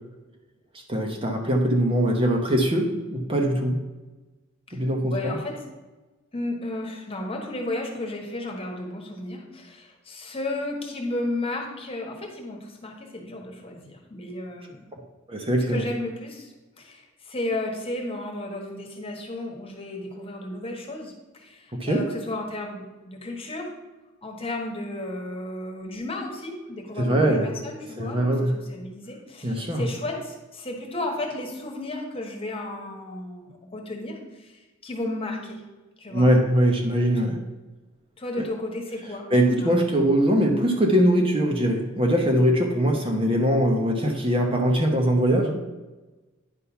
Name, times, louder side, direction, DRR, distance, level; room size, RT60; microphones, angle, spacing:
voice 1, 0.9-3.8 4.7-5.4 15.3-15.8 21.8-22.1 27.0-27.5 28.0-28.5 29.4-29.8 36.1-37.4 38.4-38.5 39.3-45.5, equal, 25° right, 2 dB, 0.9 m, -22 dB
voice 2, 5.1-5.6 6.3-14.9 15.7-23.7 24.2-35.6 36.0-36.3 37.2-37.3 38.2-39.3 39.6-39.7 40.0-40.1 42.9-43.0, left 2 dB, 30° left, 1 dB, 1.4 m, -33 dB
9.9 x 3.8 x 5.7 m, 1.2 s
head